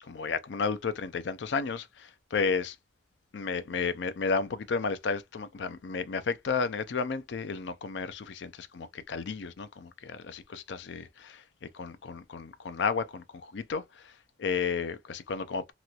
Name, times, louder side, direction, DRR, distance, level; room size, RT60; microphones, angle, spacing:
voice 1, 0.0-2.8 3.3-15.7, left 5 dB, 85° left, 0.5 m, -33 dB
3.0 x 2.9 x 2.3 m
head